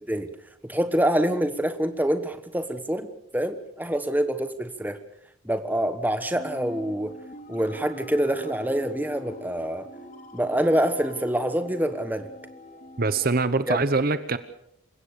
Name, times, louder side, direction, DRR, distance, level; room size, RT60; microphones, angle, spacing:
voice 1, 0.0-0.3 0.6-5.0 5.4-7.1 7.5-9.9 10.3-12.3 13.7-13.8, right 1 dB, 10° right, 9 dB, 1.3 m, -26 dB
sound 1, 6.4-13.4, left 1 dB, 40° left, 3.5 m, -44 dB
voice 2, 13.0-14.4, right 3 dB, 45° right, 13 dB, 0.9 m, -23 dB
28.0 x 16.0 x 6.9 m, 0.77 s
head